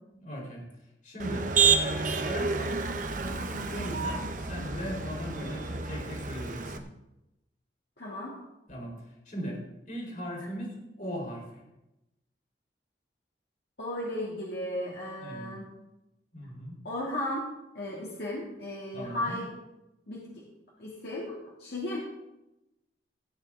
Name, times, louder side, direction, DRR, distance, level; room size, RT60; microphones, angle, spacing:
voice 1, 0.1-0.6 1.0-6.8 8.7-9.0 9.3-9.6 9.9-11.6 15.2-15.6 16.3-16.8 18.9-19.4, equal, 45° left, -1 dB, 4.2 m, -38 dB
Motor vehicle (road), 1.2-6.8, right 5 dB, 45° right, 0.9 m, -29 dB
voice 2, 8.0-8.4 13.8-15.7 16.8-17.5 17.7-19.5 20.1-20.3 20.8-22.0, left 1 dB, 65° left, -6 dB, 2.7 m, -35 dB
16.0 x 9.5 x 3.8 m, 0.93 s
head